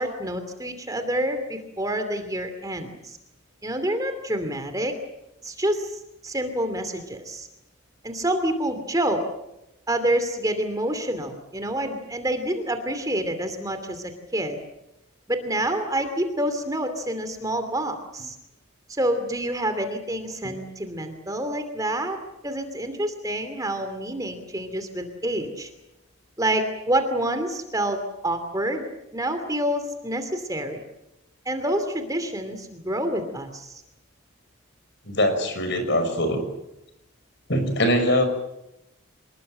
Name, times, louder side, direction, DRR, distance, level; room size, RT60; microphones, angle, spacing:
voice 1, 0.0-3.2 3.6-5.0 5.4-7.5 8.0-9.2 9.9-14.6 15.3-18.4 18.9-22.2 22.4-25.7 26.4-30.8 31.4-33.8, right 1 dB, 15° right, 8 dB, 2.7 m, -27 dB
voice 2, 35.1-36.4 37.5-38.3, equal, 55° left, 8 dB, 5.9 m, -22 dB
26.0 x 21.0 x 7.8 m, 0.88 s
head